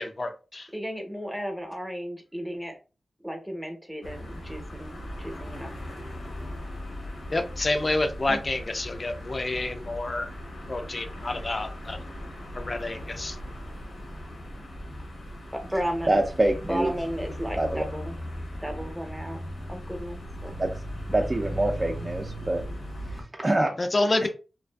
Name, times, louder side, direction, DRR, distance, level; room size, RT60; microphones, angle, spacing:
voice 1, 0.0-0.7 7.3-10.3 10.7-12.0 12.5-13.4 23.8-24.3, left 2 dB, 40° left, 7 dB, 0.4 m, -28 dB
voice 2, 0.7-2.8 3.2-5.7 15.5-16.2 16.7-18.2 18.6-19.4 19.7-20.6, equal, ahead, 3 dB, 0.7 m, -34 dB
sound 1, 4.0-23.2, equal, 75° left, 0.8 m, -38 dB
voice 3, 16.1-16.9 17.6-17.8 20.6-20.8 21.1-22.6 23.1-23.8 24.2-24.3, right 1 dB, 25° right, 2 dB, 0.3 m, -25 dB
2.5 x 2.4 x 2.2 m, 0.33 s
cardioid pair, 65°, 0 cm